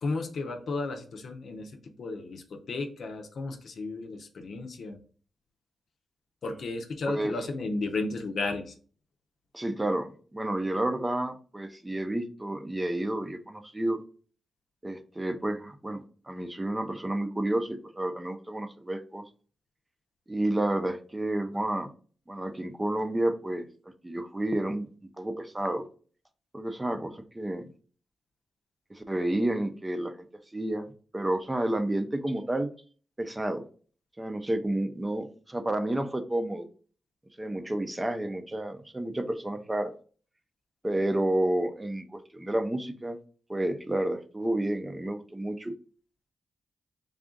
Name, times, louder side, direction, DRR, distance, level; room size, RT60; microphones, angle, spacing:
voice 1, 0.0-1.7 2.0-2.4 2.7-5.0 6.4-8.6, left 3 dB, 70° left, 4 dB, 0.7 m, -33 dB
voice 2, 7.1-7.4 9.5-14.0 14.8-19.2 20.3-21.9 22.3-23.7 24.0-24.9 25.2-25.9 26.5-27.7 28.9-30.3 30.5-30.9 31.1-32.7 33.2-33.6 34.2-36.7 37.4-39.9 40.8-43.2 43.5-45.7, right 1 dB, 20° right, 7 dB, 0.6 m, -30 dB
3.6 x 2.4 x 3.8 m, 0.41 s
cardioid pair, 60°, 0 cm